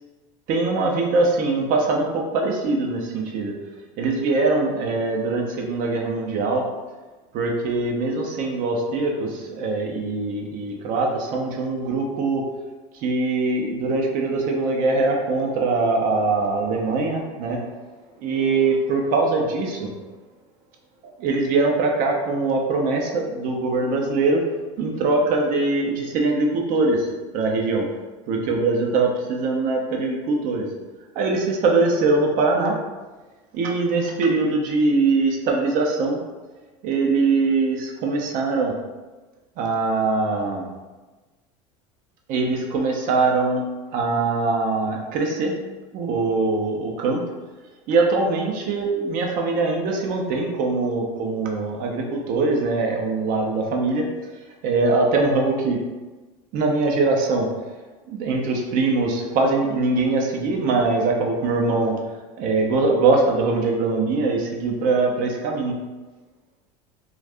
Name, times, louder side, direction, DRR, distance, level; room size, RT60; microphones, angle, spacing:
voice 1, 0.5-3.5 4.0-6.7 7.3-12.4 12.9-17.6 18.2-19.9 21.2-24.4 24.8-27.1 27.3-27.9 28.3-30.7 31.1-32.8 33.5-36.2 36.8-38.7 39.6-40.7 42.3-45.5 45.9-47.2 47.9-54.1 54.6-55.8 56.5-57.5 58.1-62.0 62.4-65.8, right 3 dB, 55° right, 1 dB, 0.7 m, -22 dB
2.6 x 2.4 x 3.4 m, 1.2 s
hypercardioid pair, 90°, 16 cm